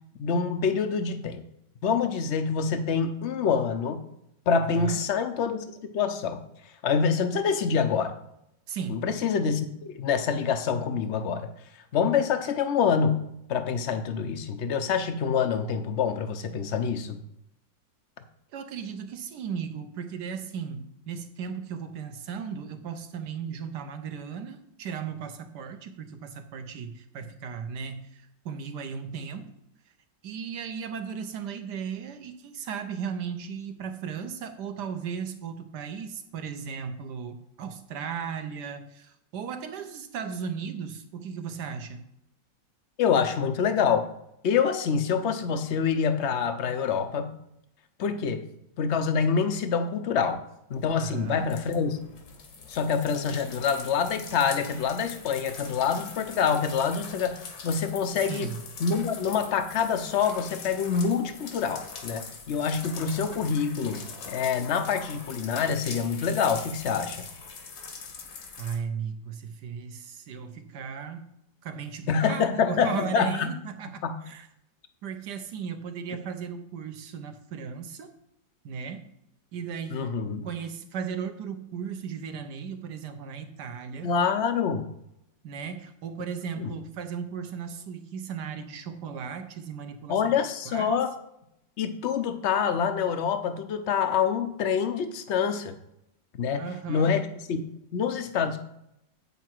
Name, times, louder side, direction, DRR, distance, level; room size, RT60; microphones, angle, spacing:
voice 1, 0.2-1.4 1.8-4.0 4.5-5.6 5.9-6.4 6.8-8.1 8.9-11.5 11.9-13.2 13.5-17.2 43.0-44.1 44.4-47.3 48.0-48.4 48.8-50.4 50.7-52.0 52.7-58.5 58.8-67.3 72.1-73.5 74.0-74.1 79.9-80.5 84.0-84.9 86.6-86.7 90.1-91.1 91.8-95.7 96.4-97.6 97.9-98.6, left 6 dB, 60° left, 8 dB, 0.7 m, -26 dB
voice 2, 8.7-9.0 18.5-29.5 30.2-42.0 51.0-51.5 58.2-58.6 68.6-74.5 75.0-78.1 78.6-79.1 79.5-80.2 80.4-84.1 85.4-90.3 90.6-90.9 96.5-97.2, right 6 dB, 65° right, 8 dB, 1.4 m, -36 dB
sound 1, 50.7-68.8, left 5 dB, 85° left, 2.1 m, -42 dB
8.4 x 7.0 x 4.5 m, 0.79 s
omnidirectional pair, 2.0 m